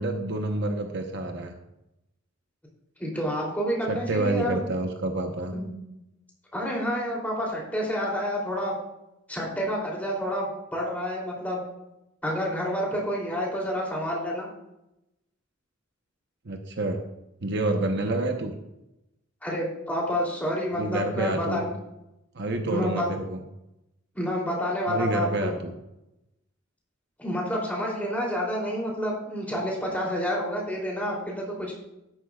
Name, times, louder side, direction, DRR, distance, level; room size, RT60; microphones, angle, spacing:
voice 1, 0.0-1.5 3.9-5.6 16.4-17.0 17.4-18.6 20.7-21.6 22.3-23.4 24.9-25.7, right 2 dB, 55° right, 4 dB, 0.9 m, -28 dB
voice 2, 3.0-4.6 5.5-5.7 6.5-8.8 9.3-11.6 12.2-14.5 19.4-21.7 22.7-23.0 24.1-25.5 27.2-31.7, equal, 10° left, -3 dB, 2.9 m, -29 dB
12.5 x 11.0 x 2.4 m, 0.90 s
head